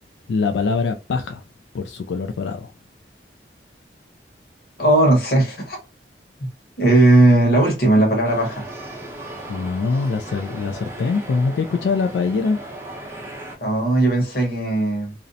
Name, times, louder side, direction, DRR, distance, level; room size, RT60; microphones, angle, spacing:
voice 1, 0.3-1.4 1.7-2.7 9.5-12.6, left 4 dB, 85° left, 0.3 m, -23 dB
voice 2, 4.8-5.8 6.8-8.6 13.6-15.1, right 1 dB, 60° left, 1.1 m, -17 dB
sound 1, 8.2-13.6, right 1 dB, 15° right, 0.6 m, -36 dB
2.5 x 2.0 x 2.5 m
head